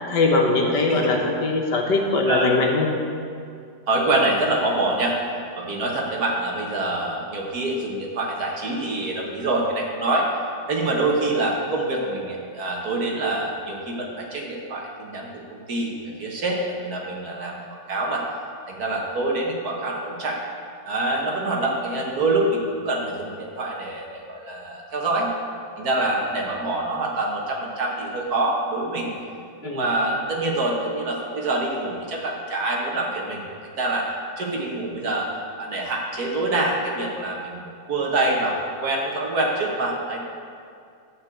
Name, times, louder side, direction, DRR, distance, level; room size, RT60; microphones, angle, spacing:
voice 1, 0.1-2.9 29.6-29.9, left 3 dB, 65° left, 0 dB, 1.7 m, -21 dB
voice 2, 3.9-5.2 5.6-10.3 10.7-17.6 17.9-18.2 18.7-20.4 20.8-25.3 25.8-29.1 29.6-34.1 34.4-35.3 35.6-37.6 37.9-40.2, right 2 dB, 55° right, -1 dB, 1.8 m, -25 dB
11.5 x 4.7 x 8.0 m, 2.3 s
omnidirectional pair, 2.0 m